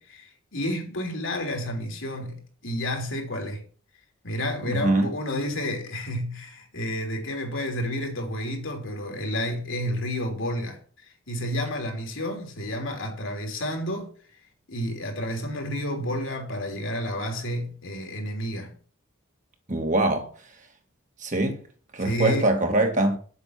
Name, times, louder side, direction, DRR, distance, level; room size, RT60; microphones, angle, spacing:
voice 1, 0.0-3.6 4.2-14.1 14.7-18.7 22.0-22.5, equal, 60° left, 3.3 m, -30 dB
voice 2, 4.7-5.1 19.7-20.3 21.2-21.6 21.9-23.2, right 2 dB, 35° right, 2.0 m, -23 dB
8.2 x 7.7 x 5.8 m
head